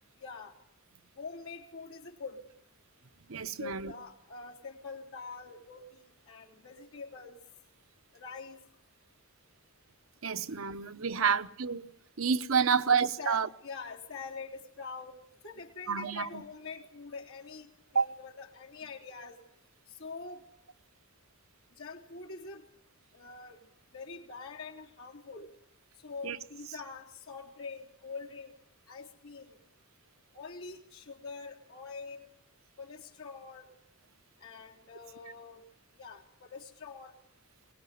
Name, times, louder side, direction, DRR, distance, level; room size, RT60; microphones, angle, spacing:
voice 1, 0.2-0.5 1.2-2.4 3.6-7.4 8.1-8.6 11.2-11.5 12.7-12.9 13.2-15.2 15.4-19.4 20.0-20.4 21.8-22.6 23.1-23.6 23.9-25.5 26.0-28.5 28.9-29.6 30.3-32.3 32.8-33.7 34.4-35.6 36.0-37.1, left 4 dB, 70° left, 3.7 m, -45 dB
voice 2, 3.3-3.9 10.2-11.9 12.2-13.5 15.9-16.4 17.9-18.1 26.2-26.4, right 6 dB, 65° right, 0.9 m, -29 dB
22.5 x 19.5 x 9.3 m
head